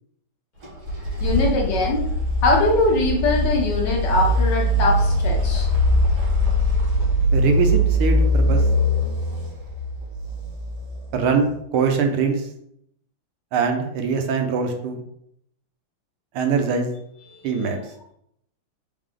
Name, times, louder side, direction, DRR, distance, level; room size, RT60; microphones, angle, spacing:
sound 1, 0.6-11.4, equal, 60° right, 1.9 m, -21 dB
voice 1, 1.2-2.1 2.4-5.7 17.3-17.4, left 2 dB, 65° left, 0 dB, 1.2 m, -22 dB
voice 2, 7.3-8.6 11.1-12.5 13.5-15.0 16.4-16.9 17.4-17.8, right 5 dB, 85° right, 5 dB, 1.6 m, -22 dB
4.0 x 3.3 x 3.7 m, 0.73 s
omnidirectional pair, 2.3 m